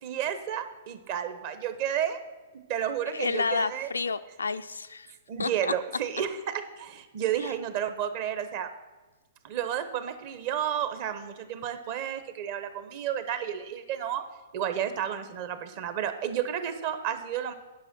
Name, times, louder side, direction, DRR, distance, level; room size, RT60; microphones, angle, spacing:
voice 1, 0.0-2.2 2.5-3.9 5.3-8.7 9.4-14.2 14.5-17.5, right 9 dB, 50° right, 10 dB, 0.9 m, -31 dB
voice 2, 3.1-5.1 5.4-5.7, left 4 dB, 85° left, 11 dB, 0.4 m, -30 dB
9.8 x 5.8 x 5.9 m, 1.2 s
hypercardioid pair, 115°, 0 cm